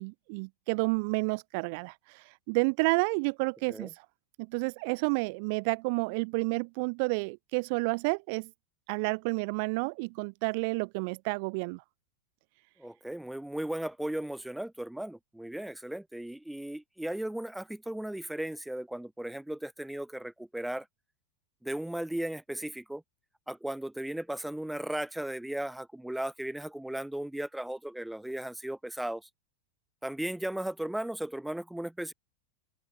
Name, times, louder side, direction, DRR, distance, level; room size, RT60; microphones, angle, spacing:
voice 1, 0.0-3.9 4.4-8.5 8.9-11.8, right 33 dB, 45° right, 1.7 m, -30 dB
voice 2, 12.8-20.9 21.6-23.0 23.5-29.3 30.0-32.1, right 1 dB, 5° right, 2.1 m, -36 dB
open air
figure-of-eight pair, 90°, 0 cm